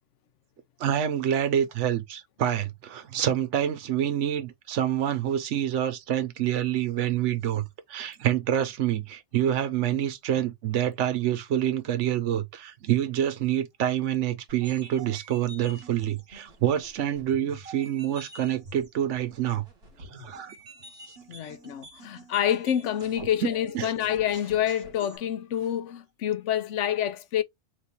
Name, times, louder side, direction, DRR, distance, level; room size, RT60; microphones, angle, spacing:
voice 1, 0.8-7.6 7.9-19.6 20.0-20.5 23.4-23.5 23.7-23.9, right 10 dB, 85° right, 1.1 m, -27 dB
sound 1, 14.5-25.2, right 2 dB, 60° right, 1.8 m, -48 dB
voice 2, 21.3-27.4, left 10 dB, 85° left, 1.0 m, -27 dB
3.3 x 3.1 x 4.1 m
omnidirectional pair, 1.2 m